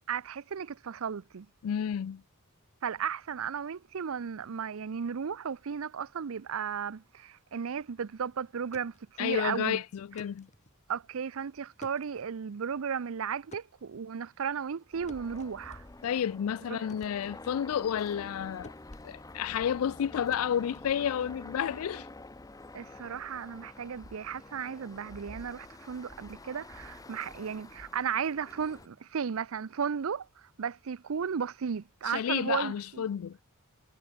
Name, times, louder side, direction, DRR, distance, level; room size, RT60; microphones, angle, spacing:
voice 1, 0.1-1.5 2.8-9.8 10.9-15.8 16.7-16.9 22.7-33.0, right 7 dB, 65° right, 0.5 m, -35 dB
voice 2, 1.6-2.2 9.2-10.5 16.0-18.7 19.0-22.1 32.1-33.4, left 9 dB, 75° left, 0.3 m, -31 dB
sound 1, 8.5-18.4 18.6-21.6, left 2 dB, 35° left, 2.3 m, -57 dB
sound 2, 14.9-28.9, left 2 dB, 15° left, 0.7 m, -48 dB
head